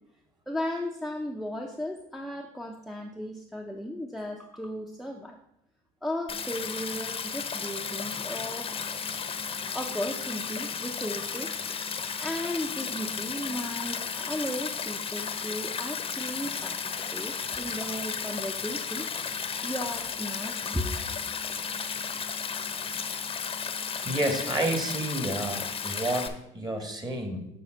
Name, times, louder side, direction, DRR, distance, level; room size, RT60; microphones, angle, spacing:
voice 1, 0.5-5.4 6.0-8.7 9.7-11.5 12.2-16.8 17.1-19.1 19.6-20.9, left 1 dB, ahead, 2 dB, 0.6 m, -35 dB
Stream, 6.3-26.3, left 6 dB, 35° left, 0.8 m, -34 dB
voice 2, 24.0-27.5, right 1 dB, 25° right, 5 dB, 1.6 m, -30 dB
6.9 x 4.1 x 6.4 m, 0.81 s
cardioid pair, 100°, 16 cm